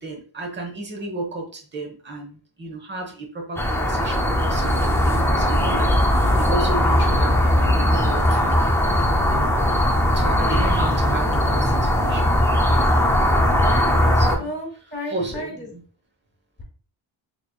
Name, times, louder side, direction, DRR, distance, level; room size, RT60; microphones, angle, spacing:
voice 1, 0.0-8.6 9.3-9.6 10.1-12.9 14.1-14.5 15.1-15.8, right 2 dB, 25° right, 2 dB, 0.8 m, -33 dB
sound 1, 3.6-14.4, left 1 dB, 5° left, 0.3 m, -19 dB
voice 2, 14.4-15.7, left 1 dB, 20° left, -2 dB, 1.3 m, -33 dB
4.0 x 3.1 x 2.3 m, 0.42 s
wide cardioid pair, 155°, 46 cm